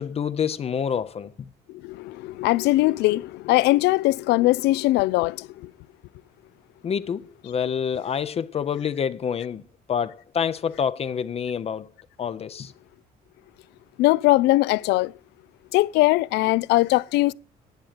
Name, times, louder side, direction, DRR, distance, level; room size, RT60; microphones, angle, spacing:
voice 1, 0.0-1.3 6.8-9.6 9.9-11.9 12.2-12.7, left 7 dB, 35° left, 0.6 m, -27 dB
voice 2, 1.7-5.7 14.0-15.1 15.7-17.3, left 19 dB, 85° left, 0.4 m, -21 dB
10.5 x 7.3 x 6.6 m
cardioid pair, 110°, 17 cm